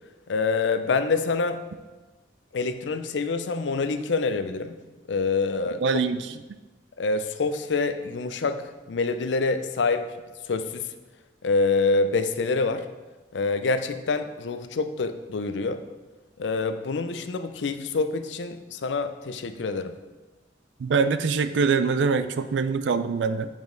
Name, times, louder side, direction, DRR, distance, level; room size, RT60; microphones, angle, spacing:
voice 1, 0.3-1.6 2.5-4.7 5.1-6.0 7.0-10.0 10.4-10.9 11.4-12.9 13.3-15.8 16.4-19.9, left 4 dB, 90° left, 10 dB, 0.5 m, -26 dB
voice 2, 5.8-6.2 20.8-23.5, right 5 dB, 85° right, 12 dB, 0.4 m, -23 dB
7.3 x 5.0 x 3.9 m, 1.2 s
head